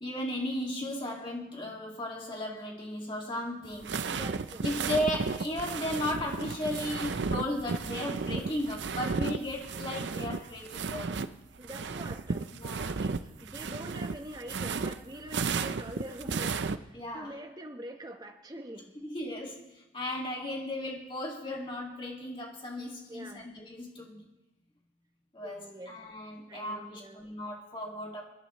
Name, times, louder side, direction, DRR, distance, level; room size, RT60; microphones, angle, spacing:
voice 1, 0.0-4.0 4.6-11.2 12.5-13.0 16.9-17.3 19.0-24.2 25.3-28.2, left 1 dB, 25° left, -1 dB, 2.2 m, -35 dB
sound 1, 3.6-11.3 11.6-16.8, right 4 dB, 75° right, 0.6 m, -34 dB
voice 2, 4.1-4.7 11.6-19.0 23.1-23.5 25.4-26.0 26.5-27.3, right 1 dB, 20° right, 5 dB, 1.1 m, -45 dB
28.5 x 12.0 x 3.1 m, 0.99 s
head